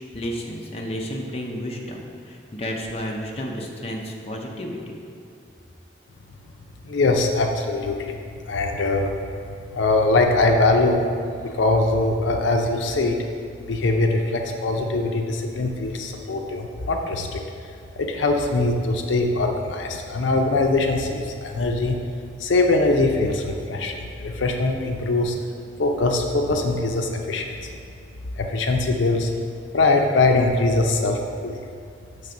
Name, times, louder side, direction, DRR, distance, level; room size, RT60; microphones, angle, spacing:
voice 1, 0.1-5.0, equal, 35° left, 0 dB, 0.6 m, -31 dB
voice 2, 6.8-8.2 8.5-9.1 9.7-11.0 11.4-13.2 13.7-17.4 18.0-22.0 22.4-25.4 25.8-27.7 28.4-29.3 29.7-31.6, left 2 dB, 80° left, 3 dB, 0.5 m, -22 dB
7.2 x 3.3 x 5.1 m, 2.5 s
head